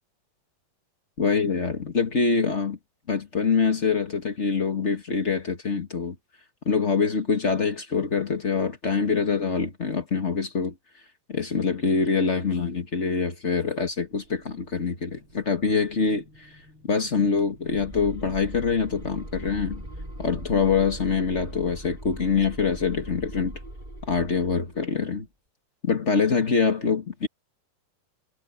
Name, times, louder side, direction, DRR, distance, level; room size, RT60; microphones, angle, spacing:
voice 1, 1.2-2.8 3.1-6.1 6.6-10.7 11.3-16.5 16.8-19.8 20.2-23.6 24.1-25.3 25.8-27.3, left 5 dB, 45° left, 0.9 m, -25 dB
sound 1, 13.9-22.2, equal, 40° right, 6.1 m, -55 dB
sound 2, 17.6-24.9, right 1 dB, 15° right, 4.6 m, -40 dB
omnidirectional pair, 4.0 m